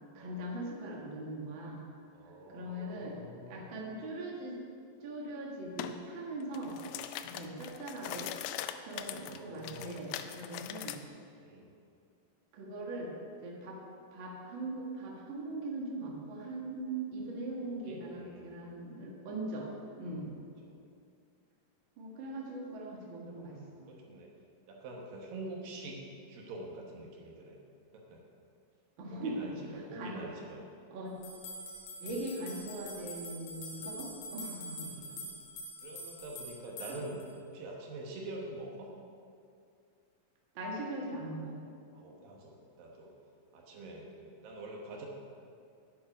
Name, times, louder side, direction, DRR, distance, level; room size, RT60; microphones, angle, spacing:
voice 1, 0.1-1.8 2.5-3.2 3.5-4.6 5.0-6.8 7.2-8.3 8.8-11.0 12.5-13.1 13.4-13.8 14.1-19.7 20.0-20.3 22.0-23.9 29.0-30.2 30.9-31.1 32.0-35.2 36.9-37.0 40.5-41.6, right 1 dB, 45° right, -2 dB, 1.7 m, -40 dB
voice 2, 2.1-3.7 7.3-7.5 8.9-10.0 11.4-11.7 17.5-18.6 20.0-20.1 20.6-20.8 23.2-24.3 24.7-26.0 26.3-27.6 27.9-28.2 29.1-30.6 33.7-34.1 34.8-35.2 35.8-38.9 41.9-43.1 43.5-45.1, right 2 dB, 75° right, 0 dB, 2.9 m, -46 dB
sound 1, 5.8-6.0 6.4-11.0, left 11 dB, 85° left, 2.4 m, -41 dB
sound 2, 31.2-37.3, equal, 55° left, 2.5 m, -45 dB
10.0 x 8.6 x 5.2 m, 2.4 s
omnidirectional pair, 4.2 m